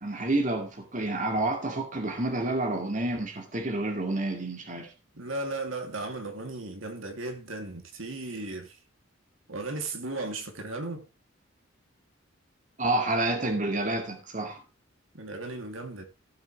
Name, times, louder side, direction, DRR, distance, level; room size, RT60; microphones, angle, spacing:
voice 1, 0.0-4.9 12.8-14.6, right 2 dB, 40° right, 2.3 m, -29 dB
voice 2, 5.1-8.8 9.5-11.1 15.1-16.0, right 2 dB, 80° right, 2.6 m, -36 dB
17.0 x 7.1 x 3.2 m
head